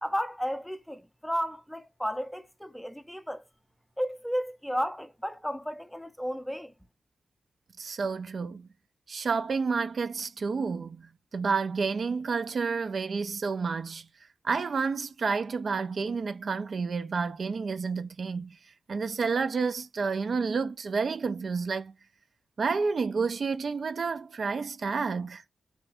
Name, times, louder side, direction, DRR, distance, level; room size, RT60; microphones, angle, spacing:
voice 1, 0.0-3.4 4.0-6.7, equal, 5° left, 0.4 m, -33 dB
voice 2, 7.8-8.7 9.1-14.1 14.4-18.6 18.9-21.9 22.6-25.4, right 5 dB, 65° right, 0.3 m, -30 dB
2.7 x 2.4 x 3.3 m
cardioid pair, 65°, 0 cm